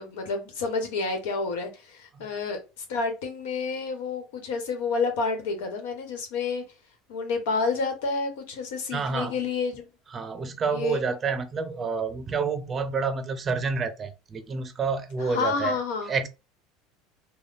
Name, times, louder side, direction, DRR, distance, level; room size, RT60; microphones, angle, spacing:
voice 1, 0.0-2.6 2.9-6.6 7.1-9.8 10.7-11.0 15.2-16.1, left 4 dB, 85° left, 1.3 m, -29 dB
voice 2, 8.9-9.3 10.1-15.8 16.1-16.3, right 5 dB, 25° right, 0.5 m, -29 dB
3.7 x 2.2 x 3.4 m
supercardioid pair, 130°, 0 cm